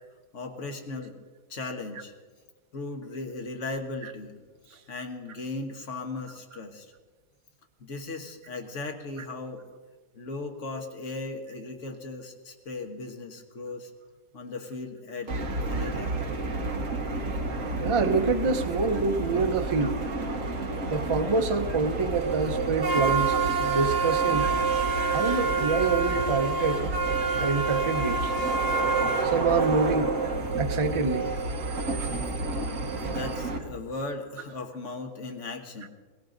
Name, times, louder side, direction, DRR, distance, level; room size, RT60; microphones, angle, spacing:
voice 1, 0.3-1.2 1.5-2.1 2.7-4.4 4.9-6.8 7.8-9.6 10.1-13.9 14.3-15.3 15.6-16.3 32.7-35.9, left 3 dB, 50° left, 4 dB, 1.6 m, -37 dB
sound 1, 15.3-33.6, right 3 dB, 50° right, 1.7 m, -29 dB
voice 2, 17.8-20.0 20.9-24.5 25.1-26.9 27.4-28.3 29.2-30.1 30.6-31.3, right 4 dB, 30° right, 6 dB, 0.5 m, -26 dB
sound 2, 22.1-33.4, right 9 dB, 75° right, 1.6 m, -33 dB
18.0 x 17.0 x 3.9 m, 1.4 s
omnidirectional pair, 1.8 m